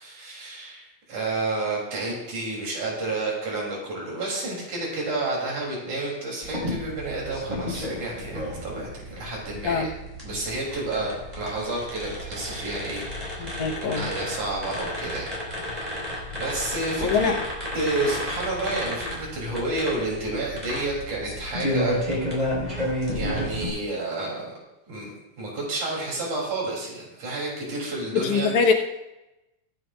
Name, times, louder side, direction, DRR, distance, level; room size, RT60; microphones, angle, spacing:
voice 1, 0.0-9.9 10.2-15.3 15.5-16.1 16.3-17.3 17.7-22.0 23.1-24.5 24.9-28.7, right 2 dB, 85° right, -3 dB, 4.8 m, -30 dB
sound 1, 6.4-23.7, left 1 dB, 10° right, 5.1 m, -32 dB
voice 2, 13.4-14.1 17.0-17.3 28.1-28.7, left 5 dB, 85° left, 3 dB, 2.6 m, -23 dB
23.5 x 9.3 x 2.5 m, 0.96 s
omnidirectional pair, 3.3 m